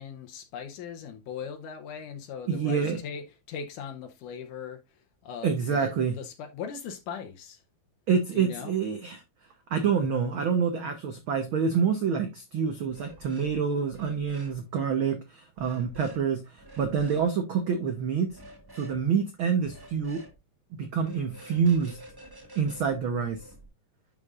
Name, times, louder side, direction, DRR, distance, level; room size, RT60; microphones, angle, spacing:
voice 1, 0.0-4.8 5.2-7.6 8.3-8.7, left 7 dB, 85° left, 2.4 m, -39 dB
voice 2, 2.5-3.0 5.4-6.2 8.1-9.2 9.7-18.4 18.7-20.2 20.7-22.0 22.5-23.5, right 6 dB, 65° right, 1.2 m, -27 dB
sound 1, 12.9-13.6 13.9-14.6 15.6-16.2 16.6-17.3 18.3-19.0 19.6-20.3 20.9-23.6, right 1 dB, 20° right, 0.6 m, -49 dB
11.0 x 5.3 x 2.5 m
omnidirectional pair, 3.6 m